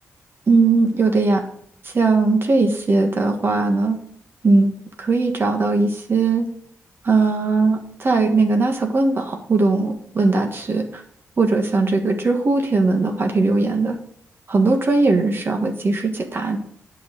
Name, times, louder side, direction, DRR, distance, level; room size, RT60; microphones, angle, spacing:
voice 1, 0.5-1.4 1.8-4.0 4.4-4.7 5.0-6.5 7.0-11.0 11.4-14.0 14.5-16.6, right 3 dB, 45° right, 4 dB, 1.6 m, -19 dB
8.2 x 5.7 x 6.5 m, 0.64 s
cardioid pair, 85°, 5 cm